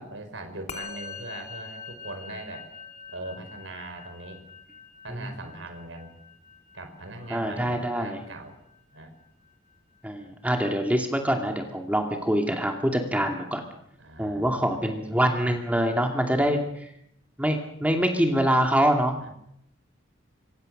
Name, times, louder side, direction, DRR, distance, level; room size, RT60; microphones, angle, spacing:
voice 1, 0.0-2.7 3.1-4.4 5.0-6.1 6.7-8.6 8.9-9.1 14.0-14.8 19.2-19.3, right 2 dB, 70° right, 7 dB, 4.8 m, -41 dB
Musical instrument, 0.7-10.2, left 5 dB, 35° left, 2.9 m, -45 dB
voice 2, 7.3-8.2 10.0-13.6 14.2-16.6 17.4-19.3, equal, 5° right, 3 dB, 2.4 m, -25 dB
25.5 x 25.0 x 6.6 m, 0.77 s
head